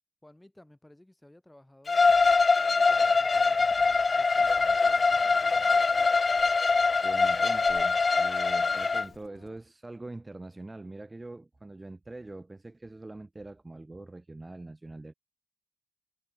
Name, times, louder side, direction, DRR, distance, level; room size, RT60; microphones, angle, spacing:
voice 1, 0.2-5.9, left 1 dB, 10° left, 6.7 m, -57 dB
Bowed string instrument, 1.9-9.1, left 4 dB, 30° left, 0.4 m, -23 dB
sound 1, 2.1-6.3, right 4 dB, 35° right, 3.6 m, -58 dB
sound 2, 2.9-9.6, left 7 dB, 55° left, 3.2 m, -58 dB
voice 2, 7.0-15.1, right 2 dB, 15° right, 3.5 m, -43 dB
cardioid pair, 90°, 0 cm